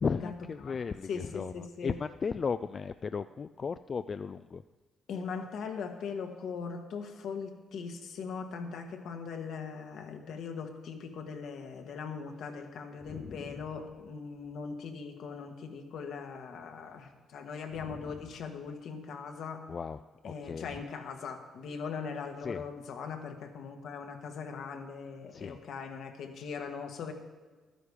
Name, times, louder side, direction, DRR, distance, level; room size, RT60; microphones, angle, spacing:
voice 1, 0.0-4.6 13.1-13.4 17.9-18.0 19.7-20.0 20.2-20.7 22.4-22.6 25.3-25.6, left 5 dB, 40° left, 11 dB, 0.3 m, -35 dB
voice 2, 1.1-2.0 5.1-19.7 20.2-27.1, left 5 dB, 75° left, 4 dB, 1.4 m, -40 dB
12.5 x 10.0 x 4.8 m, 1.4 s
cardioid pair, 90°, 0 cm